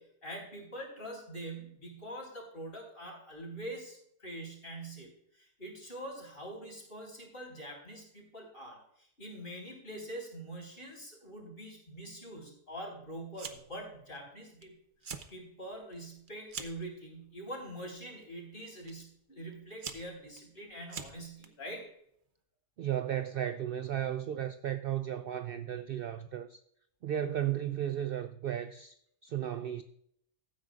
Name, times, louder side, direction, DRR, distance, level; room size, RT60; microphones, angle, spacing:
voice 1, 0.0-14.8 15.0-21.9, right 1 dB, 45° left, 4.0 m, -44 dB
Fire, 13.3-13.8 14.2-14.6 14.9-15.3 15.7-16.9 17.7-18.0 18.9-19.0 19.5-21.5, right 5 dB, 45° right, 1.0 m, -44 dB
voice 2, 22.8-26.6 27.0-29.0 29.2-29.8, right 11 dB, 60° right, 0.6 m, -34 dB
15.0 x 8.9 x 2.4 m
omnidirectional pair, 1.4 m